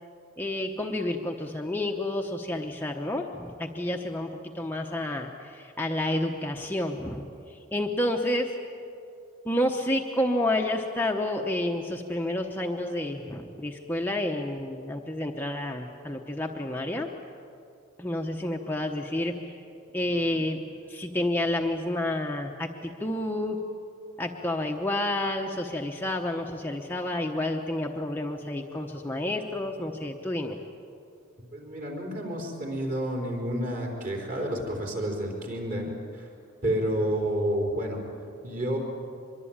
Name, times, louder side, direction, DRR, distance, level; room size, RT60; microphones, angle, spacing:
voice 1, 0.4-8.6 9.4-17.1 18.0-19.6 19.9-20.6 20.9-23.6 24.2-30.6, left 1 dB, 10° left, 1 dB, 0.9 m, -30 dB
voice 2, 31.5-36.3 36.6-38.0 38.4-38.8, right 1 dB, 40° right, 1 dB, 4.3 m, -30 dB
24.5 x 22.5 x 8.8 m, 2.6 s
head